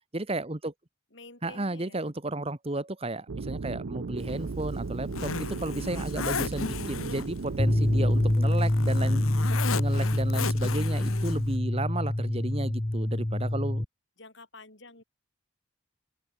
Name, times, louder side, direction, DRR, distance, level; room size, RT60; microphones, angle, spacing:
voice 1, 0.1-0.7 1.4-9.2 9.7-13.8, right 2 dB, 30° right, 1.3 m, -33 dB
voice 2, 1.1-2.1 9.0-10.4 14.2-15.0, left 2 dB, 60° left, 5.5 m, -51 dB
sound 1, 3.3-8.4, right 4 dB, 75° right, 0.6 m, -35 dB
Zipper (clothing), 4.2-11.6, left 5 dB, 90° left, 1.2 m, -36 dB
sound 2, 7.6-13.9, left 1 dB, 20° left, 0.8 m, -26 dB
open air
head